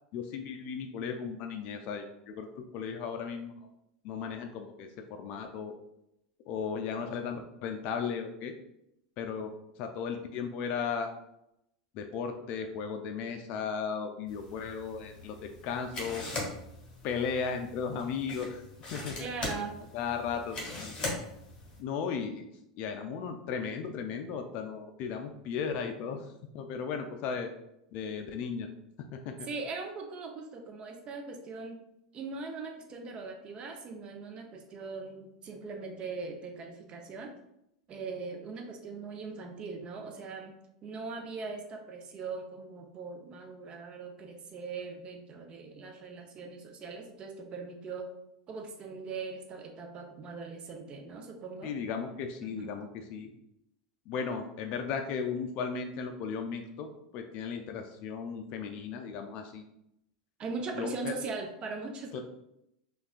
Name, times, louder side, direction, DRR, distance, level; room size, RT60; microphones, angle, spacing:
voice 1, 0.1-3.6 4.0-5.7 6.5-8.5 9.2-9.5 9.8-11.1 11.9-16.2 17.0-18.6 18.9-19.3 19.9-20.9 21.8-22.4 22.8-26.3 26.5-27.5 27.9-28.7 29.1-29.5 51.6-53.3 54.1-56.9 57.1-59.6 60.8-61.1 62.1-62.2, left 6 dB, 50° left, 5 dB, 0.3 m, -36 dB
sound 1, 14.3-21.8, left 2 dB, 30° left, 1.1 m, -41 dB
voice 2, 19.2-19.7 29.5-31.8 32.1-37.3 37.9-40.5 40.8-48.1 48.5-51.7 52.4-52.7 60.4-62.2, right 4 dB, 35° right, 3 dB, 0.5 m, -40 dB
3.4 x 2.3 x 2.4 m, 0.81 s
hypercardioid pair, 100°, 3 cm